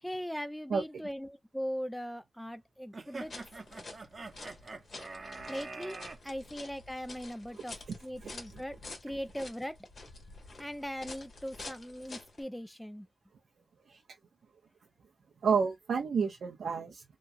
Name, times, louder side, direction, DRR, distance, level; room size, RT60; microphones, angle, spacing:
voice 1, 0.0-3.3 5.5-7.8 8.0-9.8 10.6-13.1, equal, 5° left, 0.3 m, -40 dB
sound 1, 2.9-6.2, right 3 dB, 50° right, 0.7 m, -44 dB
sound 2, 3.1-12.4, left 3 dB, 70° left, 1.3 m, -48 dB
voice 2, 8.2-8.6 13.9-14.0 15.4-17.0, right 6 dB, 90° right, 0.6 m, -30 dB
2.9 x 2.3 x 2.5 m
cardioid pair, 65°, 0 cm